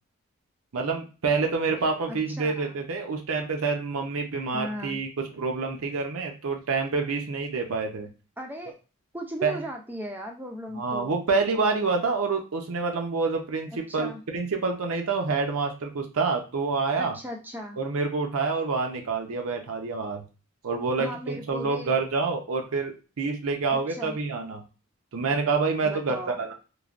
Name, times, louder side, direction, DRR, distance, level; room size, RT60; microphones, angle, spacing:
voice 1, 0.7-5.1 5.3-8.1 9.4-9.6 10.7-17.1 17.8-20.2 20.6-24.6 25.1-26.5, right 4 dB, 80° right, 3 dB, 0.6 m, -27 dB
voice 2, 2.1-2.8 4.5-5.0 8.4-8.7 9.1-11.1 13.9-14.2 17.0-17.8 21.0-21.9 23.7-24.2 25.8-26.4, equal, 10° right, 2 dB, 0.4 m, -37 dB
3.2 x 2.1 x 2.4 m, 0.33 s
head